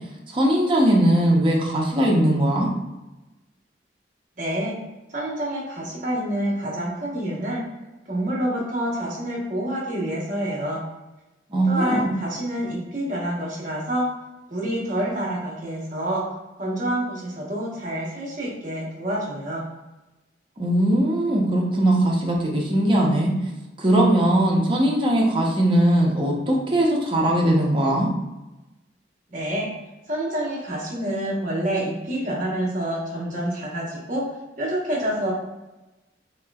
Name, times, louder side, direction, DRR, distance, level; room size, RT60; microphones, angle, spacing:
voice 1, 0.3-2.7 11.5-12.1 20.6-23.3 23.8-28.1, right 1 dB, 25° right, -2 dB, 0.7 m, -20 dB
voice 2, 4.4-4.7 5.1-7.7 8.1-10.8 11.7-14.1 14.5-16.2 16.6-19.6 29.3-29.7 30.1-34.2 34.6-35.3, right 1 dB, 45° right, -4 dB, 1.0 m, -27 dB
3.9 x 3.0 x 2.3 m, 1.0 s
head